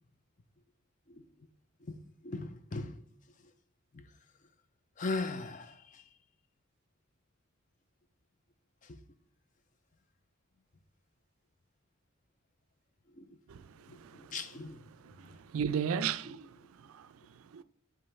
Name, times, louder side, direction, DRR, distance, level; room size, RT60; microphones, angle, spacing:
voice 1, 1.8-3.0 3.4-3.5 3.9-4.1 5.0-6.1 8.8-9.0 13.1-13.4 13.9-14.8 16.0-16.1, left 3 dB, 35° left, 0.5 m, -39 dB
voice 2, 13.5-14.4 15.0-17.6, right 7 dB, 80° right, 0.4 m, -37 dB
7.3 x 5.5 x 3.2 m
head